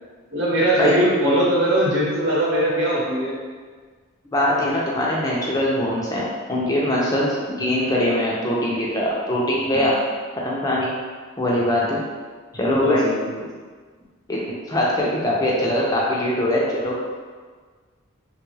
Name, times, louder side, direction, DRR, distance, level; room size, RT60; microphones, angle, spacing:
voice 1, 0.3-3.3 9.7-10.0 11.8-12.0 12.5-13.3, right 1 dB, 65° right, -6 dB, 0.9 m, -21 dB
voice 2, 4.3-6.2 6.5-10.0 10.4-10.9 11.4-12.0 12.5-13.0 14.3-14.4 14.7-17.0, left 1 dB, 15° left, -5 dB, 0.4 m, -22 dB
3.2 x 2.3 x 3.1 m, 1.5 s
head